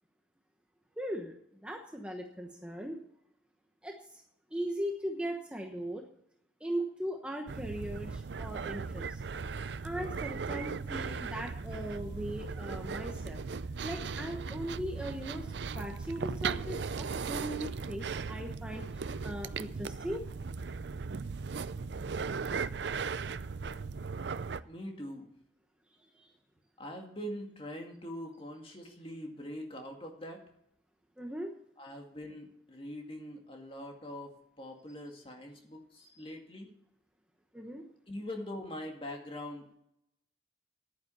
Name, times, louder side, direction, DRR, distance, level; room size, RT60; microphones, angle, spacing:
voice 1, 1.0-3.0 3.8-4.2 4.5-6.0 6.6-9.2 9.8-13.4 13.8-20.3 26.1-26.3 31.2-31.5 36.0-36.3 37.5-37.8, equal, 5° right, 2 dB, 1.0 m, -39 dB
sound 1, 7.5-24.6, right 5 dB, 65° right, 0.5 m, -37 dB
voice 2, 24.6-25.3 26.8-30.4 31.8-34.3 34.6-36.7 38.1-39.8, left 1 dB, 30° left, 2 dB, 2.1 m, -43 dB
11.0 x 9.5 x 7.0 m, 0.77 s
head